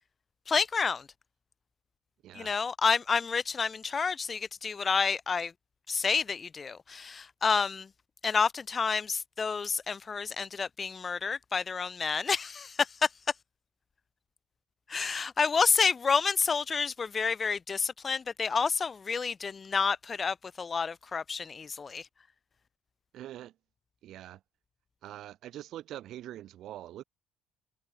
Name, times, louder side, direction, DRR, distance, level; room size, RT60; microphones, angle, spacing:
voice 1, 0.5-1.1 2.3-5.5 5.9-7.9 8.2-13.1 14.9-22.0, left 5 dB, 30° left, 0.4 m, -29 dB
voice 2, 23.1-23.5 24.0-24.4 25.0-27.0, right 13 dB, 65° right, 1.4 m, -43 dB
cardioid pair, 110°, 0 cm